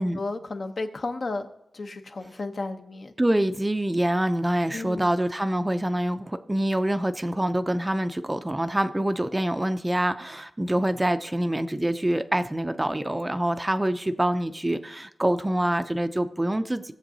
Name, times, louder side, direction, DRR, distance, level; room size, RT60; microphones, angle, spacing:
voice 1, 0.0-1.5 1.7-3.1 4.7-5.1, left 3 dB, 50° left, 6 dB, 0.8 m, -33 dB
voice 2, 3.2-16.9, right 1 dB, 15° right, 10 dB, 0.4 m, -25 dB
17.0 x 7.3 x 2.7 m, 0.81 s
wide cardioid pair, 85°, 0 cm